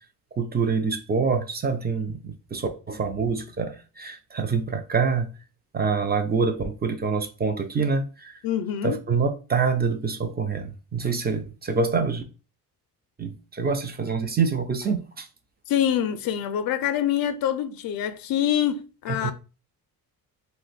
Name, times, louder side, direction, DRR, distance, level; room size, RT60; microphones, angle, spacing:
voice 1, 0.4-5.3 5.7-8.4 8.8-12.2 13.2-15.3 19.2-19.3, right 5 dB, 25° right, 0.4 m, -26 dB
voice 2, 8.4-9.0 15.7-19.3, left 10 dB, 65° left, 0.5 m, -25 dB
2.5 x 2.1 x 4.0 m
cardioid pair, 105°, 38 cm